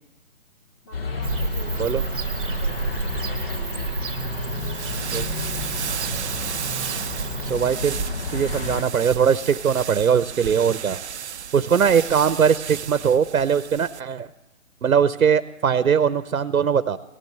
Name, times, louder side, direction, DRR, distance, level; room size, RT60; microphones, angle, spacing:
voice 1, 0.8-5.7, right 1 dB, 15° left, 1 dB, 2.6 m, -45 dB
sound 1, 0.9-8.8, left 4 dB, 45° left, 1.2 m, -31 dB
Bird / Cricket, 1.2-7.5, right 6 dB, 40° right, 0.9 m, -31 dB
sound 2, 4.5-14.0, right 8 dB, 55° right, 0.5 m, -33 dB
voice 2, 7.5-8.0 8.3-11.0 11.5-14.3 14.8-17.0, right 7 dB, 90° right, 15 dB, 0.8 m, -20 dB
16.5 x 11.0 x 6.7 m, 0.96 s
hypercardioid pair, 160°, 41 cm